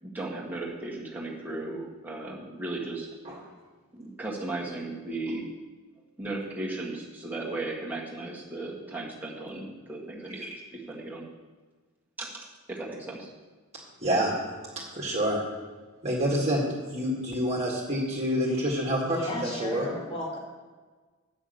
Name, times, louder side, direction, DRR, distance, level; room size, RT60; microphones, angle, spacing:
voice 1, 0.0-3.1 3.9-5.5 6.2-11.3 12.2-12.3 12.7-13.3, right 2 dB, 10° right, -4 dB, 1.6 m, -36 dB
voice 2, 14.0-14.3 14.9-15.4 16.0-16.7 16.9-20.0, equal, 30° right, -4 dB, 1.8 m, -27 dB
voice 3, 19.0-20.4, left 1 dB, 25° left, -2 dB, 2.1 m, -34 dB
8.4 x 6.2 x 7.8 m, 1.4 s
head